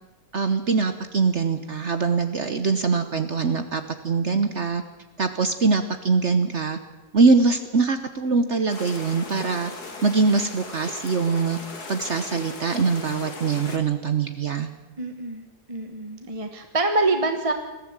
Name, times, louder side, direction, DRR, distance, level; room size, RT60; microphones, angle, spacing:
voice 1, 0.3-4.8 5.2-6.8 7.1-9.7 10.0-11.6 11.9-14.7, right 4 dB, 50° right, 9 dB, 1.2 m, -23 dB
sound 1, 8.7-13.8, left 3 dB, 85° left, 2.8 m, -38 dB
voice 2, 15.0-15.4 15.7-17.5, right 2 dB, 25° right, 6 dB, 1.3 m, -25 dB
20.5 x 14.5 x 8.8 m, 1.1 s
omnidirectional pair, 1.6 m